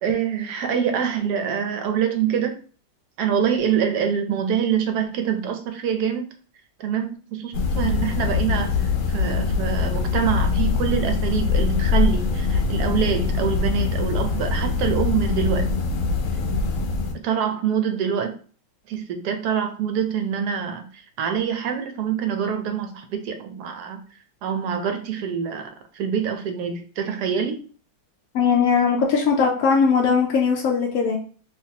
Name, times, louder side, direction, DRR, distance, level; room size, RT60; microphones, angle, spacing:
voice 1, 0.0-2.6 3.2-6.3 6.8-15.7 17.2-18.3 18.9-24.0 24.4-27.6, right 8 dB, 70° right, 6 dB, 1.0 m, -25 dB
sound 1, 7.5-17.1, left 4 dB, 90° left, 1.4 m, -23 dB
voice 2, 28.3-31.2, left 5 dB, 70° left, -1 dB, 0.8 m, -19 dB
3.3 x 3.2 x 2.8 m, 0.42 s
omnidirectional pair, 2.0 m